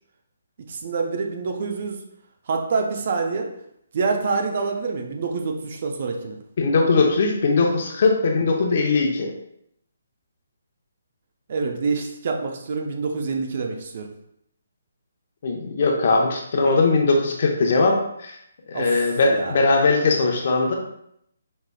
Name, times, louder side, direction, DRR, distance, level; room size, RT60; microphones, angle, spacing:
voice 1, 0.7-2.0 2.5-3.5 3.9-6.4 11.5-14.1 18.7-19.6, right 4 dB, 50° right, 3 dB, 0.6 m, -26 dB
voice 2, 6.6-9.3 15.4-18.4 18.7-20.8, left 3 dB, 50° left, 1 dB, 0.8 m, -20 dB
5.3 x 3.3 x 2.3 m, 0.75 s
figure-of-eight pair, 145°, 0 cm